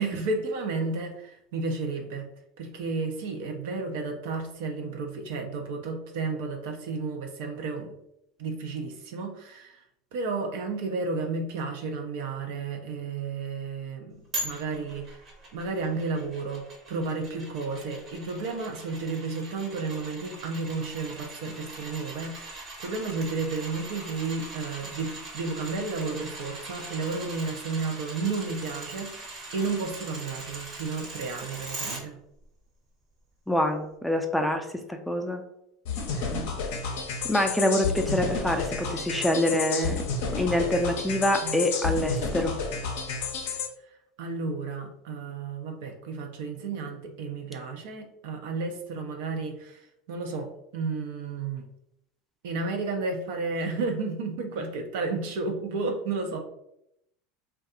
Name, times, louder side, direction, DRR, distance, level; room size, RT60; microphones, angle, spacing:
voice 1, 0.0-2.3 2.6-7.9 8.4-9.8 10.1-15.2 15.5-32.2 36.1-36.4 44.2-49.8 50.1-51.7 52.4-56.4, right 3 dB, 70° right, 4 dB, 0.4 m, -32 dB
sound 1, 14.3-32.0 32.4-32.5, right 2 dB, 40° right, 0.8 m, -41 dB
voice 2, 33.5-35.4 37.2-40.0 40.4-42.5, left 1 dB, 5° left, 4 dB, 0.4 m, -26 dB
sound 2, 35.8-43.7, left 4 dB, 70° left, 0.5 m, -31 dB
sound 3, 36.3-36.5 38.0-38.3 39.7-40.0 41.4-41.7, right 5 dB, 85° right, 0.8 m, -39 dB
2.6 x 2.2 x 2.5 m, 0.79 s
hypercardioid pair, 80°, 0 cm